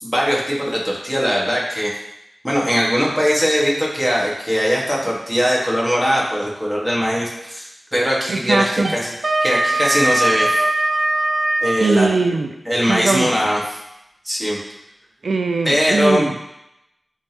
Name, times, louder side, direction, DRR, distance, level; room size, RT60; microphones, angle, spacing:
voice 1, 0.0-1.9 2.4-9.1 9.4-10.7 11.6-12.1 12.7-13.6 14.2-14.6 15.7-16.2, equal, ahead, -5 dB, 1.7 m, -20 dB
voice 2, 8.3-8.9 11.8-12.5 12.9-13.3 15.2-16.4, right 3 dB, 90° right, 6 dB, 0.4 m, -20 dB
Wind instrument woodwind instrument, 8.8-11.9, right 2 dB, 50° right, 0.7 m, -20 dB
9.9 x 3.5 x 3.0 m, 0.85 s
wide cardioid pair, 95°, 0 cm